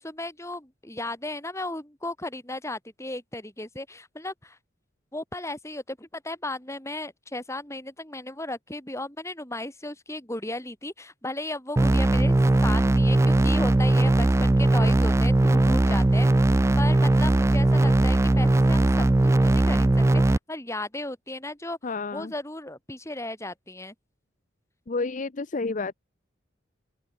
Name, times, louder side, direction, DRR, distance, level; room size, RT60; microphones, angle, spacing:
voice 1, 0.0-4.6 5.1-16.3 16.8-19.9 20.1-23.9, left 2 dB, 15° left, 5.2 m, -35 dB
sound 1, 11.8-20.4, right 2 dB, 15° right, 0.3 m, -19 dB
voice 2, 21.8-22.3 24.9-25.9, left 3 dB, 40° left, 0.6 m, -30 dB
open air
head